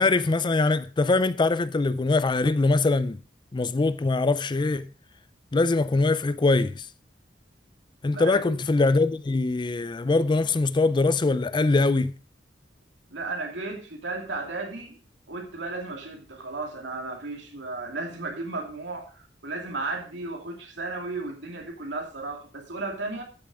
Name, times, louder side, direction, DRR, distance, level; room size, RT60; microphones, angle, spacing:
voice 1, 0.0-3.2 3.5-4.9 5.5-6.9 8.0-12.1, left 3 dB, 25° left, 0.4 m, -23 dB
voice 2, 8.1-8.6 13.1-15.0 15.3-23.2, right 3 dB, 80° right, 2.6 m, -34 dB
12.5 x 6.9 x 4.9 m
head